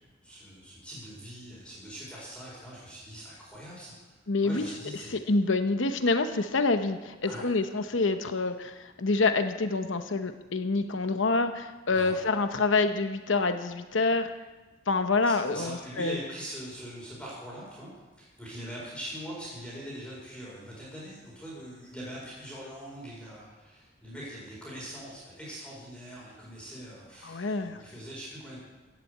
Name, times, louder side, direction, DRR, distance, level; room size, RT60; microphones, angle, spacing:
voice 1, 0.2-4.0 4.4-5.2 7.3-7.4 11.9-12.2 15.2-17.9 18.2-28.6, equal, 5° left, -6 dB, 4.8 m, -42 dB
voice 2, 4.3-4.7 5.1-14.3 14.9-16.2 27.2-27.8, left 3 dB, 75° left, 8 dB, 0.9 m, -27 dB
15.5 x 7.6 x 8.0 m, 1.2 s
head